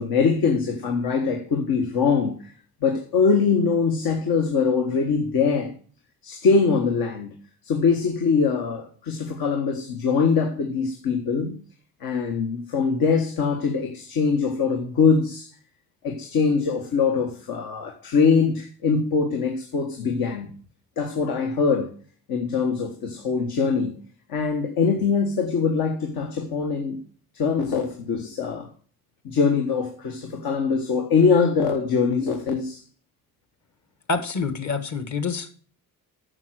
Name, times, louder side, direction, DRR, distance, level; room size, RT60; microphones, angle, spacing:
voice 1, 0.0-2.5 2.8-5.7 6.2-7.3 7.6-11.6 12.0-15.5 16.0-20.5 21.0-21.9 22.3-24.0 24.3-27.0 27.3-28.7 29.2-32.8, left 5 dB, 75° left, 1.6 m, -23 dB
voice 2, 34.1-35.5, left 4 dB, 50° left, 1.7 m, -27 dB
9.7 x 6.5 x 6.3 m
cardioid pair, 100°, 36 cm